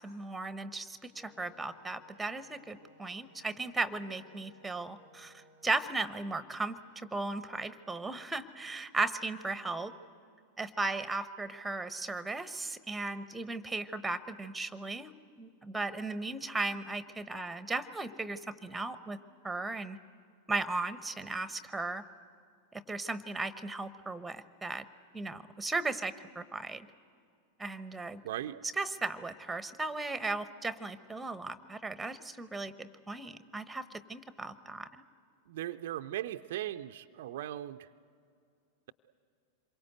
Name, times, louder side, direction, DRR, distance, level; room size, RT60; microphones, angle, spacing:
voice 1, 0.0-9.9 10.6-15.1 15.4-19.2 19.4-20.0 20.5-22.0 22.7-24.8 25.1-26.9 27.6-28.2 28.8-34.9, right 3 dB, 5° right, 14 dB, 1.0 m, -36 dB
Wind instrument woodwind instrument, 1.1-5.8, left 1 dB, 90° left, 5.0 m, -61 dB
voice 2, 28.2-28.6 35.5-37.9, right 13 dB, 55° right, 9 dB, 0.6 m, -38 dB
26.5 x 23.0 x 8.1 m, 2.3 s
figure-of-eight pair, 90°, 0 cm